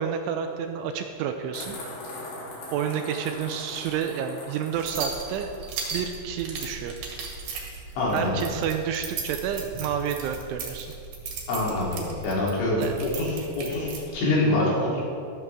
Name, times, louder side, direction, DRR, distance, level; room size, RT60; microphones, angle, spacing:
voice 1, 0.0-1.8 2.7-5.5 5.9-6.9 8.1-10.9 12.8-12.9, right 8 dB, 80° right, 6 dB, 2.9 m, -30 dB
sound 1, 1.5-5.9, left 1 dB, 85° left, 5.9 m, -40 dB
sound 2, 4.7-14.1, right 4 dB, 60° right, 3.4 m, -37 dB
voice 2, 8.0-8.5 11.5-15.0, left 2 dB, 70° left, -6 dB, 5.7 m, -25 dB
14.5 x 13.5 x 3.6 m, 2.3 s
omnidirectional pair, 5.8 m